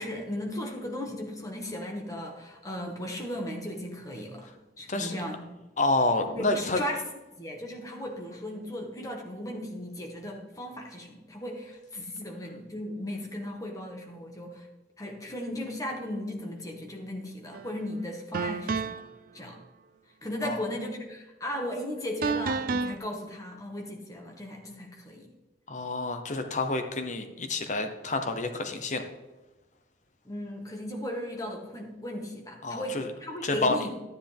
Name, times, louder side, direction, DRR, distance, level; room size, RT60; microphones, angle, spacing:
voice 1, 0.0-5.4 6.3-7.0 7.4-14.6 15.0-19.0 19.3-19.6 20.2-25.3 30.2-33.9, left 1 dB, 20° left, 0 dB, 1.7 m, -36 dB
voice 2, 5.8-6.8 20.4-20.6 25.7-29.0 32.6-33.1 33.4-33.8, left 2 dB, 40° left, 6 dB, 0.9 m, -28 dB
sound 1, 17.5-17.7 18.3-19.1 22.2-23.0, right 4 dB, 50° right, 0.4 m, -30 dB
12.5 x 10.0 x 3.5 m, 1.1 s
head